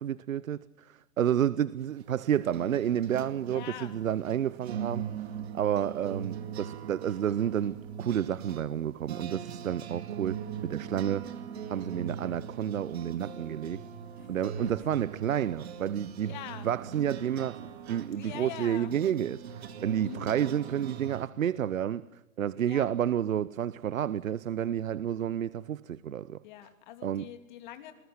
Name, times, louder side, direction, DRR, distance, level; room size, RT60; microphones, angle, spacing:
voice 1, 0.0-11.3 11.7-13.8 14.3-16.4 16.6-22.1 22.4-26.4 27.0-27.3, right 10 dB, 75° right, 0.8 m, -30 dB
sound 1, 1.8-21.3, right 7 dB, 50° right, 2.4 m, -41 dB
voice 2, 3.5-4.0 14.2-14.7 16.2-16.7 18.1-19.0 20.0-20.4 22.7-22.9 26.4-27.9, left 12 dB, 35° left, 2.8 m, -44 dB
27.0 x 20.5 x 9.4 m
hypercardioid pair, 150°, 40 cm